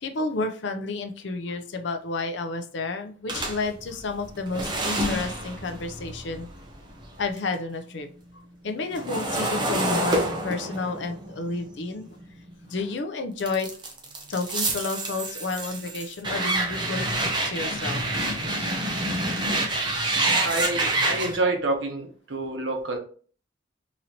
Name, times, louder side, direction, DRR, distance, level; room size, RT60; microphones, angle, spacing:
voice 1, 0.0-6.5 7.2-8.1 8.6-12.1 12.7-13.7 14.3-18.0, left 3 dB, 65° left, 7 dB, 0.5 m, -31 dB
sound 1, 3.3-7.5 7.9-12.8 13.4-21.4, right 1 dB, 25° right, 0.7 m, -28 dB
voice 2, 20.4-23.0, right 2 dB, 70° right, 3 dB, 0.9 m, -27 dB
4.0 x 2.9 x 2.7 m, 0.42 s
head